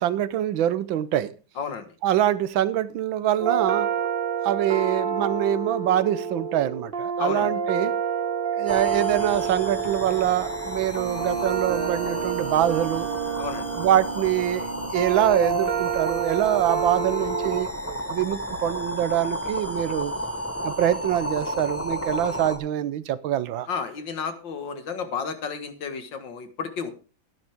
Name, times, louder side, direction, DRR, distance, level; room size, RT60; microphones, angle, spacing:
voice 1, 0.0-1.3 2.0-3.9 4.4-7.9 8.5-13.1 13.7-20.1 20.6-23.7, right 11 dB, 90° right, 1.6 m, -24 dB
voice 2, 1.6-1.9 7.2-7.5 13.4-13.7 23.7-26.9, left 6 dB, 75° left, 2.2 m, -32 dB
sound 1, 3.4-17.6, right 7 dB, 45° right, 0.8 m, -28 dB
sound 2, 8.7-22.6, equal, 10° left, 1.1 m, -33 dB
12.5 x 10.5 x 3.5 m
omnidirectional pair, 2.1 m